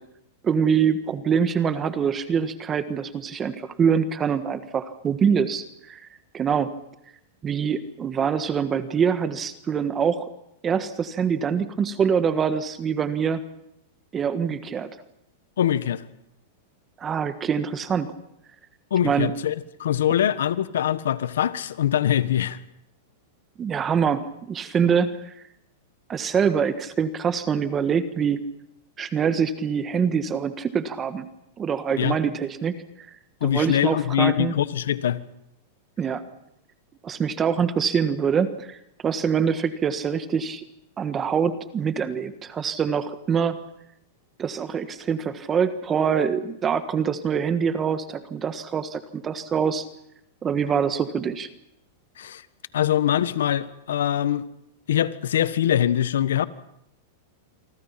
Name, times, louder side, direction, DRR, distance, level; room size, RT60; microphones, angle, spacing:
voice 1, 0.4-6.1 6.3-6.7 7.4-10.3 10.6-13.4 14.1-14.9 17.0-18.1 19.0-19.3 23.6-25.3 26.1-28.4 29.0-31.3 31.6-33.1 33.4-34.6 36.0-36.2 37.0-40.6 41.0-43.6 44.4-49.9 50.4-51.5, right 7 dB, 20° right, 1.5 m, -24 dB
voice 2, 15.6-16.0 18.9-22.6 32.0-32.2 33.4-35.2 52.2-52.4 52.7-54.5 54.9-56.5, left 10 dB, 85° left, 1.4 m, -23 dB
28.0 x 24.0 x 5.9 m
supercardioid pair, 140°, 0 cm